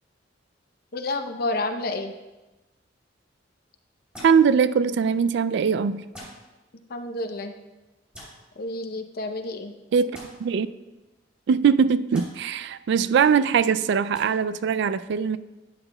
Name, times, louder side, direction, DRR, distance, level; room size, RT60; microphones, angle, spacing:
voice 1, 0.9-2.1 6.9-7.5 8.6-9.8, left 2 dB, 55° left, 6 dB, 0.7 m, -30 dB
sound 1, 4.1-4.4 6.1-6.4 8.1-8.3 10.1-10.3 12.1-12.3 14.1-14.2, equal, 5° right, 3.2 m, -41 dB
voice 2, 4.2-6.0 9.9-10.1 10.4-10.7 11.5-15.4, right 6 dB, 65° right, 14 dB, 0.3 m, -21 dB
12.0 x 8.8 x 2.2 m, 1.1 s
head